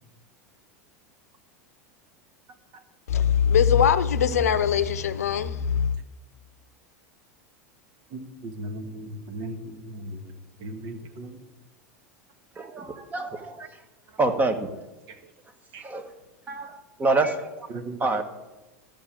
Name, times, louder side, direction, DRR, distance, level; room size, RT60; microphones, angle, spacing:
voice 1, 3.1-6.0, left 8 dB, 80° left, 0.7 m, -21 dB
voice 2, 8.1-10.2 10.6-11.4 15.7-15.8 17.7-18.0, right 1 dB, 50° right, 1.6 m, -37 dB
voice 3, 12.6-13.7 14.2-14.7 15.8-16.0 16.5-17.5 18.0-18.2, right 3 dB, 20° right, 1.5 m, -26 dB
13.5 x 5.3 x 7.6 m
hypercardioid pair, 90°, 8 cm